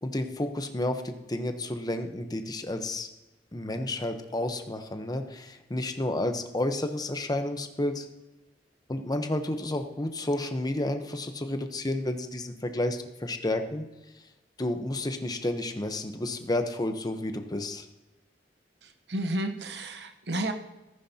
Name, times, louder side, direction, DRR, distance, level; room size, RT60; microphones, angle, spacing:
voice 1, 0.0-3.1 3.5-8.1 8.9-13.8 14.6-17.9, left 1 dB, 20° left, 6 dB, 0.9 m, -31 dB
voice 2, 18.8-20.5, right 1 dB, 70° right, 6 dB, 1.0 m, -32 dB
15.0 x 14.0 x 2.8 m, 1.0 s
head